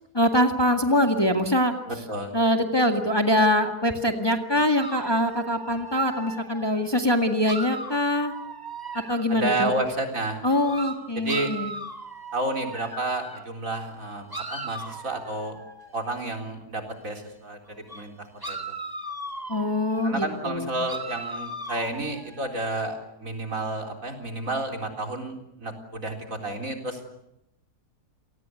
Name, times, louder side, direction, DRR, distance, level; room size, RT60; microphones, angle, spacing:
voice 1, 0.1-1.7 2.3-8.3 9.1-9.7 10.4-11.7 19.5-20.8, left 1 dB, 15° left, 5 dB, 1.9 m, -23 dB
voice 2, 1.9-2.3 9.3-10.4 11.1-11.5 12.3-15.6 15.9-18.8 20.0-27.0, right 2 dB, 55° right, 4 dB, 4.4 m, -31 dB
sound 1, 4.8-6.9 7.4-9.5 10.5-13.5 14.3-16.3 17.9-18.1 18.4-20.1 20.9-22.6, right 2 dB, 15° right, 2.2 m, -38 dB
29.5 x 19.0 x 9.7 m, 0.82 s
omnidirectional pair, 1.7 m